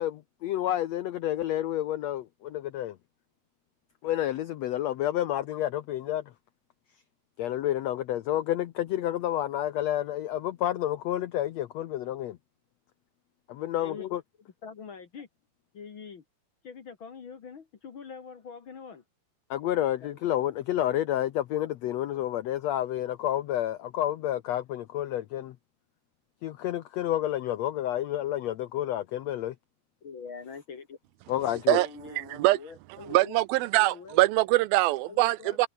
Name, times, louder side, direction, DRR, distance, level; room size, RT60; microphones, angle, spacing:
voice 1, 0.0-3.0 4.0-6.2 7.4-12.4 13.5-14.2 19.5-25.6 26.4-29.5 31.3-31.8, left 12 dB, 85° left, 1.5 m, -29 dB
voice 2, 14.6-15.3 15.7-16.2 16.6-19.0 20.0-20.2 30.0-31.0 31.5-33.4 33.7-34.2 35.1-35.7, left 6 dB, 45° left, 1.8 m, -44 dB
voice 3, 33.1-35.7, right 18 dB, 85° right, 2.6 m, -23 dB
omnidirectional pair, 4.2 m